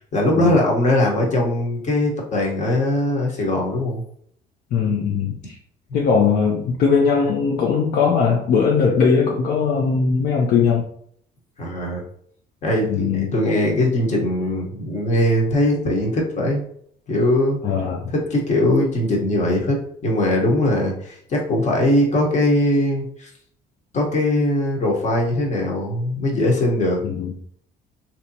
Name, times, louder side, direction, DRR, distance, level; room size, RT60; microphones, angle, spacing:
voice 1, 0.1-4.0 11.6-12.0 12.6-16.7 17.1-17.6 18.1-23.3 23.9-27.0, left 1 dB, 45° left, -1 dB, 1.1 m, -20 dB
voice 2, 4.7-5.6 5.9-10.8 12.9-13.3 17.6-18.1 27.0-27.3, left 5 dB, 60° left, 0 dB, 0.6 m, -19 dB
3.2 x 2.8 x 2.7 m, 0.64 s
cardioid pair, 110°, 17 cm